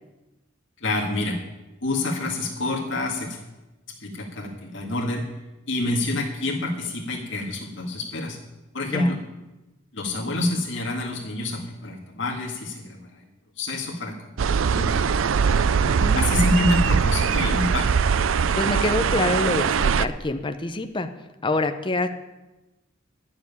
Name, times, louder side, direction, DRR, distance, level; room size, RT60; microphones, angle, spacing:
voice 1, 0.8-1.4 1.8-3.4 4.0-5.3 5.7-8.4 8.7-9.2 9.9-13.2 13.6-14.2 14.4-15.3 16.1-17.9, left 2 dB, 70° left, -1 dB, 1.9 m, -27 dB
sound 1, 14.4-20.0, right 6 dB, 90° right, 0.5 m, -21 dB
voice 2, 15.8-16.3 18.6-21.1 21.4-22.1, left 2 dB, 25° left, 8 dB, 0.8 m, -26 dB
11.0 x 7.2 x 9.8 m, 1.1 s
head